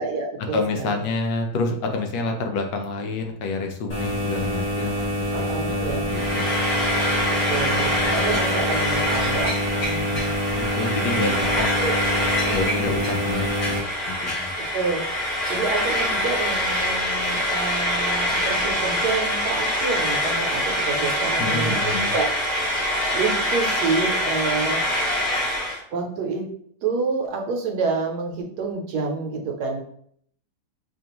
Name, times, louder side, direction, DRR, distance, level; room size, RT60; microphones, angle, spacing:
voice 1, 0.0-0.9 5.3-6.1 7.5-9.6 11.1-11.9 12.4-12.9 14.7-15.0 15.5-22.3 23.1-24.8 25.9-26.5 26.8-29.8, right 4 dB, 70° right, 2 dB, 1.1 m, -28 dB
voice 2, 0.5-6.5 7.7-8.2 9.8-11.7 12.5-14.5 21.4-22.1, left 3 dB, 80° left, 4 dB, 1.3 m, -29 dB
sound 1, 3.9-13.8, equal, 40° left, 1.1 m, -26 dB
Frying (food), 6.1-25.8, equal, 55° left, 2.0 m, -25 dB
5.0 x 2.4 x 2.9 m, 0.63 s
omnidirectional pair, 1.9 m